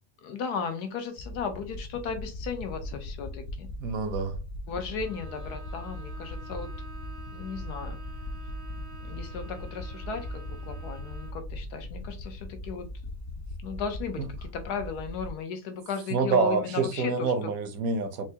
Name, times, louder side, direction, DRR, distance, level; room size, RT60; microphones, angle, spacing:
voice 1, 0.2-3.7 4.7-6.7 7.3-8.0 9.0-12.9 13.6-17.1 17.4-17.5, left 6 dB, 85° left, 1.3 m, -35 dB
sound 1, 1.2-15.3, left 1 dB, 65° left, 0.7 m, -39 dB
voice 2, 3.8-4.4 14.2-14.3 16.1-18.3, right 4 dB, 65° right, 1.1 m, -27 dB
Bowed string instrument, 5.0-11.5, right 5 dB, 90° right, 1.4 m, -48 dB
4.5 x 2.2 x 2.8 m
omnidirectional pair, 1.7 m